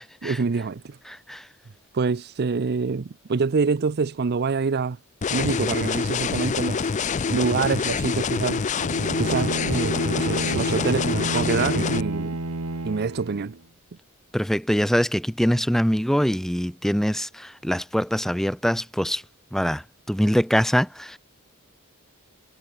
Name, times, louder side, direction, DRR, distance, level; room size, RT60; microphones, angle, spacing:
voice 1, 0.2-1.0 1.9-5.0 5.3-6.9 7.3-8.6 9.2-12.4 12.8-13.6, right 5 dB, 45° right, 0.5 m, -26 dB
sound 1, 5.2-12.0, left 5 dB, 35° left, 0.4 m, -26 dB
Bowed string instrument, 8.8-13.6, right 2 dB, 85° right, 1.7 m, -30 dB
voice 2, 14.3-19.2 19.5-19.8 20.1-21.2, equal, ahead, 1.1 m, -23 dB
head